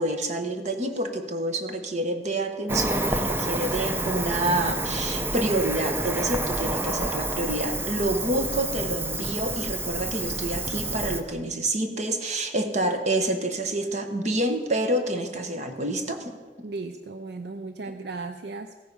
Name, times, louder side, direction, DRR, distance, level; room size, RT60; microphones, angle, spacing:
voice 1, 0.0-16.3, right 1 dB, 40° right, 7 dB, 1.1 m, -28 dB
Cricket, 2.7-11.2, right 2 dB, 15° right, 0.6 m, -29 dB
voice 2, 16.6-18.8, right 3 dB, 65° right, 9 dB, 0.5 m, -36 dB
15.5 x 9.5 x 5.4 m, 1.5 s
head